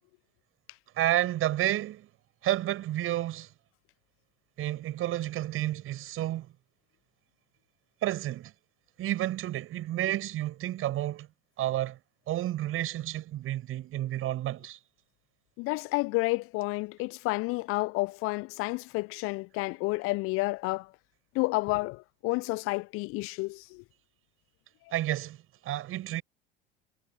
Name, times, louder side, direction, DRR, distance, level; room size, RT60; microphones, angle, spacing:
voice 1, 1.0-2.1 2.4-3.5 4.6-6.5 8.0-8.5 9.0-11.3 11.6-12.0 12.3-14.8 24.9-25.4 25.6-26.2, right 14 dB, 45° right, 7.0 m, -30 dB
voice 2, 15.6-20.9 21.3-23.8, left 24 dB, 45° left, 0.7 m, -30 dB
figure-of-eight pair, 70°, 31 cm